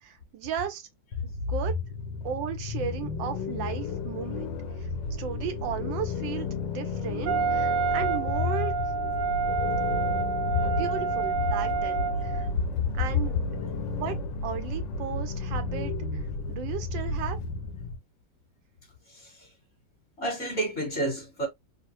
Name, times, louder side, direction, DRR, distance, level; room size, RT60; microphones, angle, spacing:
voice 1, 0.0-0.9 1.2-1.7 2.2-4.9 5.2-8.7 10.6-12.5 12.9-13.6 13.9-14.2 14.4-17.4, right 9 dB, 90° right, 1.5 m, -35 dB
sound 1, 1.1-18.0, left 3 dB, 85° left, 1.4 m, -32 dB
Wind instrument woodwind instrument, 7.3-12.5, right 5 dB, 70° right, 1.2 m, -28 dB
voice 2, 19.1-19.5 20.2-21.5, left 1 dB, 45° left, 1.6 m, -29 dB
3.6 x 2.0 x 3.0 m
omnidirectional pair, 2.0 m